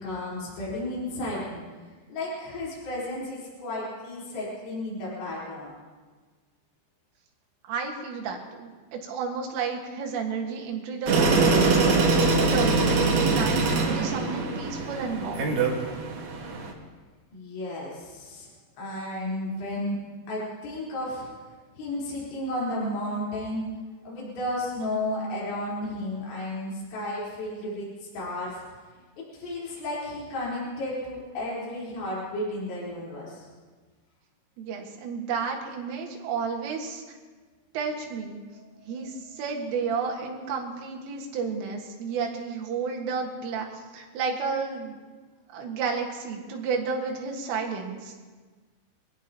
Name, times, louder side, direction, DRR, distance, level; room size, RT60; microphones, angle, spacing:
voice 1, 0.0-1.6 2.1-5.7 17.3-18.5 18.8-20.0 20.3-21.3 21.7-23.6 24.0-28.7 29.3-33.5, left 1 dB, 70° left, -7 dB, 6.6 m, -33 dB
voice 2, 7.7-12.0 12.2-15.6 34.6-37.2 37.7-38.4 38.9-45.0 45.5-48.1, right 5 dB, 85° right, 1 dB, 4.3 m, -32 dB
sound 1, 11.1-16.7, right 3 dB, 60° right, 2.2 m, -23 dB
24.0 x 17.0 x 3.0 m, 1.4 s
omnidirectional pair, 5.6 m